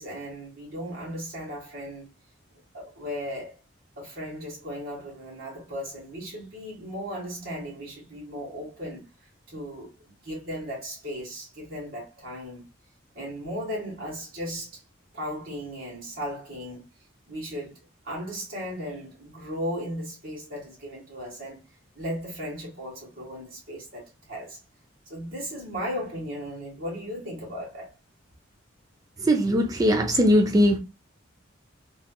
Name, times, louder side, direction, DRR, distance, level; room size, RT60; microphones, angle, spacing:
voice 1, 0.0-2.1 2.7-3.6 4.0-9.1 9.5-9.9 10.2-12.6 13.1-14.8 15.1-16.9 17.3-17.8 18.0-21.6 21.9-24.6 25.1-27.9, equal, 50° right, 1.8 m, -36 dB
voice 2, 29.2-30.8, equal, 20° right, 0.4 m, -20 dB
3.2 x 2.9 x 2.2 m
head